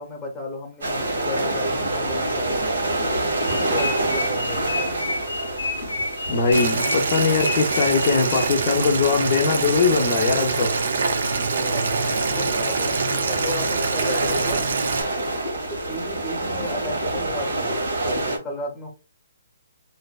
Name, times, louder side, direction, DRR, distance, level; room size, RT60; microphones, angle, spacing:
voice 1, 0.0-2.6 3.0-4.7 11.2-12.0 12.3-14.7 15.2-18.9, left 1 dB, 5° left, 0.8 m, -34 dB
sound 1, 0.8-18.4, right 2 dB, 85° right, 1.2 m, -28 dB
sound 2, 3.4-8.8, left 3 dB, 90° left, 0.7 m, -30 dB
voice 2, 6.3-10.7, left 5 dB, 35° left, 0.4 m, -21 dB
Boiling, 6.5-15.0, right 4 dB, 65° right, 0.5 m, -25 dB
2.6 x 2.1 x 2.3 m
hypercardioid pair, 165°, 0 cm